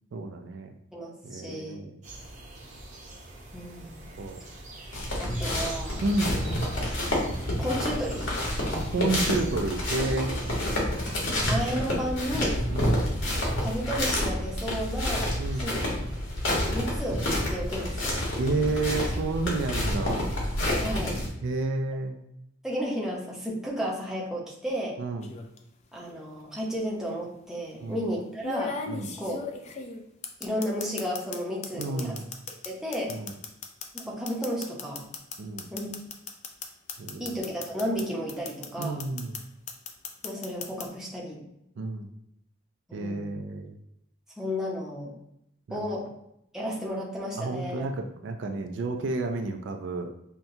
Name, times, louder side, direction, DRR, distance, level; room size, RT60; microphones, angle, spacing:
voice 1, 0.1-0.7 1.2-2.0 4.2-4.4 6.0-6.5 8.9-10.4 12.7-12.9 15.4-15.8 18.4-20.3 21.4-22.2 25.0-25.3 27.8-28.1 28.9-29.1 31.7-32.3 33.1-33.3 35.4-35.7 37.0-37.4 38.8-39.4 41.8-42.1 42.9-43.8 45.7-45.9 47.4-50.1, right 3 dB, 65° right, 5 dB, 0.4 m, -30 dB
voice 2, 0.9-1.8 3.5-4.1 5.2-6.5 7.6-8.3 10.5-10.8 11.4-12.6 13.5-15.3 15.6-15.9 16.5-18.2 20.8-21.2 22.6-25.0 25.9-28.8 29.2-29.4 30.4-32.2 32.6-33.2 33.9-35.0 35.7-35.9 37.2-39.0 40.2-41.4 42.9-43.4 44.4-45.1 45.7-46.0 46.5-47.9, equal, ahead, -4 dB, 0.7 m, -33 dB
sound 1, 2.0-10.7, right 2 dB, 40° right, 0.7 m, -44 dB
Walking on snow in woods Figuried, 4.9-21.3, left 1 dB, 85° left, 1.3 m, -29 dB
sound 2, 25.2-25.6 26.8-26.9 28.4-31.4 31.6-38.0 38.3-39.4 39.7-40.8, left 5 dB, 35° left, 0.3 m, -36 dB
5.7 x 2.2 x 2.7 m, 0.79 s
head